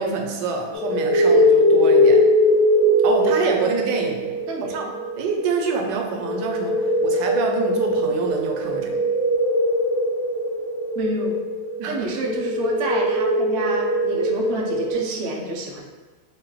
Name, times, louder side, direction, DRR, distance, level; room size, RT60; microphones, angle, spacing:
voice 1, 0.0-2.2 3.0-4.4 4.7-4.9 5.2-9.1 11.8-12.0, right 4 dB, 80° right, 2 dB, 1.2 m, -26 dB
sound 1, 0.7-14.9, left 1 dB, 40° left, 0.9 m, -21 dB
voice 2, 10.9-11.4 11.9-15.8, right 2 dB, 65° right, -1 dB, 0.6 m, -28 dB
3.1 x 3.0 x 3.7 m, 1.3 s
omnidirectional pair, 1.9 m